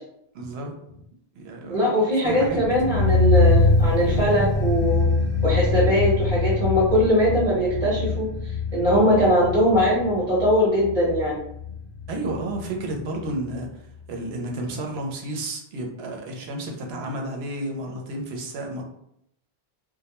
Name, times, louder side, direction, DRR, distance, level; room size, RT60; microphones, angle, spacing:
voice 1, 0.3-1.0 1.4-3.1 12.1-13.8 14.1-18.8, right 1 dB, 80° right, 1 dB, 0.8 m, -32 dB
voice 2, 1.7-5.0 5.4-11.4, equal, 40° right, -8 dB, 1.0 m, -21 dB
sound 1, 2.3-13.3 13.5-13.6, left 3 dB, 70° left, 0.8 m, -23 dB
2.2 x 2.1 x 2.8 m, 0.75 s
omnidirectional pair, 1.0 m